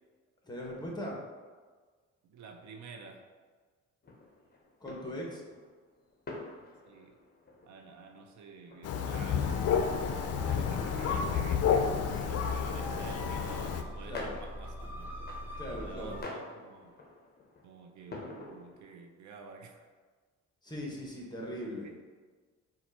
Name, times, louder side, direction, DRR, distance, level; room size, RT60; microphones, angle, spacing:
voice 1, 0.5-1.2 4.8-5.4 14.1-14.3 15.6-16.2 20.6-21.9, equal, 15° left, -2 dB, 1.2 m, -39 dB
voice 2, 2.3-3.2 6.9-7.1 7.6-15.1 15.8-16.9 17.6-19.9 21.8-21.9, right 5 dB, 70° right, 3 dB, 0.6 m, -50 dB
sound 1, 4.0-18.8, left 2 dB, 30° left, 0.8 m, -49 dB
Thunder, 8.8-13.8, left 7 dB, 55° left, 0.4 m, -30 dB
sound 2, 9.4-16.2, equal, 5° right, 0.8 m, -42 dB
4.4 x 2.5 x 4.2 m, 1.4 s
cardioid pair, 90°, 30 cm